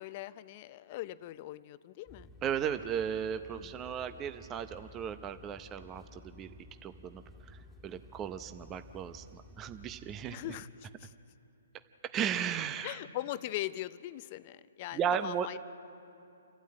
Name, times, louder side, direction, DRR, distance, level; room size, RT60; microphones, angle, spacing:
voice 1, 0.0-2.3 3.6-3.7 10.3-11.1 12.8-15.6, left 15 dB, 40° left, 15 dB, 0.6 m, -41 dB
sound 1, 2.1-10.4, left 1 dB, ahead, 2.4 m, -54 dB
voice 2, 2.4-6.5 6.8-10.4 12.1-13.0 14.9-15.5, right 8 dB, 25° right, 10 dB, 0.7 m, -35 dB
28.5 x 12.5 x 8.7 m, 2.7 s
hypercardioid pair, 135°, 0 cm